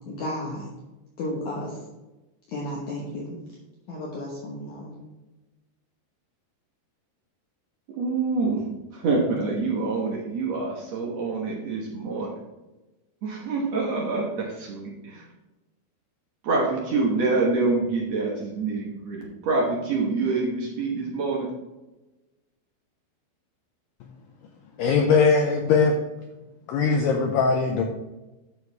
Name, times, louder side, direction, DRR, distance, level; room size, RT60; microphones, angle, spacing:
voice 1, 0.1-0.7 1.2-1.8 2.5-3.4 3.9-5.0, left 1 dB, 60° left, -3 dB, 2.2 m, -33 dB
voice 2, 7.9-8.7 8.9-12.4 13.2-15.3 16.4-21.5, right 3 dB, 70° right, -2 dB, 1.6 m, -26 dB
voice 3, 24.8-25.9 26.7-27.8, left 5 dB, 80° left, 2 dB, 2.0 m, -20 dB
9.5 x 6.4 x 3.4 m, 1.1 s
omnidirectional pair, 4.8 m